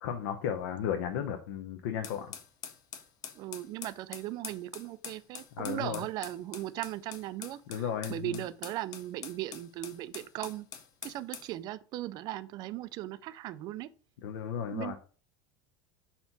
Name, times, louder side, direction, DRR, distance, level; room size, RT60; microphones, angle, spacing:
voice 1, 0.0-2.3 5.6-6.0 7.7-8.4 14.2-15.0, left 8 dB, 75° left, 0.7 m, -34 dB
sound 1, 2.0-11.5, left 8 dB, 30° left, 0.7 m, -45 dB
voice 2, 3.4-10.7 11.0-13.9 14.7-15.0, right 14 dB, 35° right, 0.3 m, -38 dB
5.8 x 4.3 x 3.9 m
supercardioid pair, 170°, 12 cm